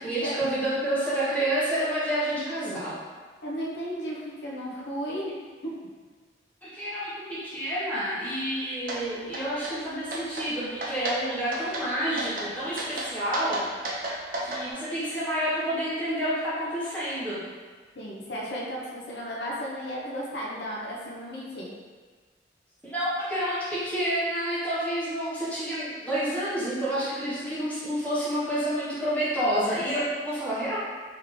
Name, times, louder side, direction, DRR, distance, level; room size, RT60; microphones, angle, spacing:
voice 1, 0.0-2.9 6.6-13.6 13.9-14.0 14.4-17.4 22.8-30.8, right 1 dB, 5° left, -11 dB, 1.1 m, -29 dB
voice 2, 3.4-5.3 5.6-5.7 17.9-21.7, equal, 75° left, -5 dB, 0.8 m, -34 dB
sound 1, 8.9-9.0 9.3-9.8 10.1-10.5 10.8-11.2 11.5-11.9 12.2-12.5 12.8-14.6, right 1 dB, 50° right, 0.7 m, -32 dB
3.4 x 3.2 x 3.7 m, 1.4 s
head